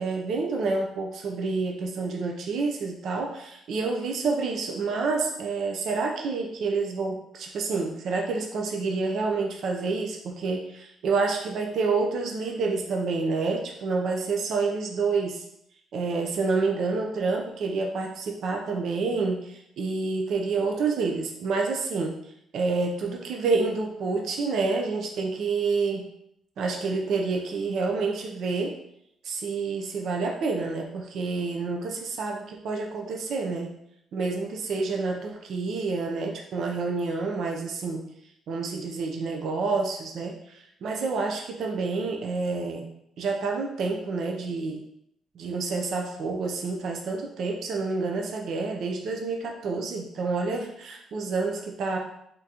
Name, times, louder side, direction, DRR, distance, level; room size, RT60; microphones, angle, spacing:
voice 1, 0.0-15.4 15.9-26.1 26.6-28.8 29.2-33.7 34.1-38.0 38.5-42.9 43.2-44.8 45.3-52.0, right 4 dB, 60° right, 1 dB, 0.6 m, -28 dB
3.8 x 3.7 x 2.8 m, 0.75 s
cardioid pair, 155°, 0 cm